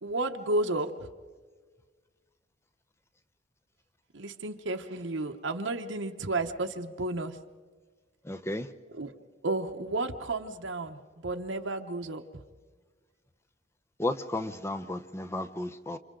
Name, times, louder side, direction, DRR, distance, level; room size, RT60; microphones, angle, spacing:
voice 1, 0.0-1.1 4.1-7.4 8.9-9.2 9.4-12.2, right 2 dB, 75° right, 4 dB, 1.0 m, -32 dB
voice 2, 8.3-8.7 14.0-16.0, left 1 dB, 15° left, 9 dB, 0.7 m, -33 dB
29.5 x 27.0 x 3.8 m, 1.5 s
head